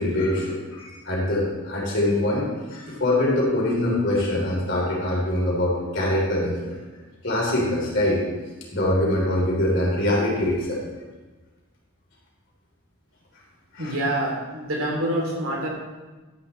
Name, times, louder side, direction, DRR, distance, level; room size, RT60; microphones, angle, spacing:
voice 1, 0.0-6.7 7.2-8.2 8.7-10.8 13.7-14.0, left 1 dB, 55° left, -4 dB, 3.6 m, -23 dB
voice 2, 13.8-15.7, right 1 dB, 70° right, -2 dB, 3.0 m, -26 dB
12.0 x 10.0 x 3.3 m, 1.2 s
head